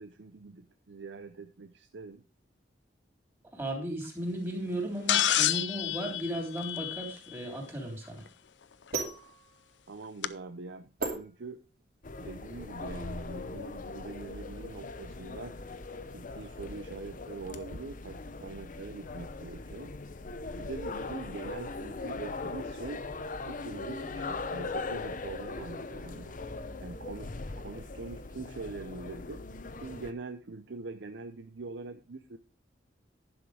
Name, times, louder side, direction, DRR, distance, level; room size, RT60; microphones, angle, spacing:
voice 1, 0.0-2.2 9.9-11.6 12.2-15.6 16.1-19.9 20.5-23.0 23.4-26.4 26.8-29.5 29.8-32.4, right 3 dB, 90° right, 8 dB, 0.7 m, -43 dB
voice 2, 3.5-8.3, right 1 dB, 15° right, 1 dB, 3.4 m, -35 dB
sound 1, 5.1-7.4 9.0-9.1 10.2-10.3, left 12 dB, 80° left, 0.6 m, -28 dB
sound 2, 6.9-12.1, right 3 dB, 55° right, 2.8 m, -40 dB
sound 3, 12.0-30.1, left 3 dB, 50° left, 0.8 m, -40 dB
11.0 x 6.4 x 4.9 m, 0.34 s
head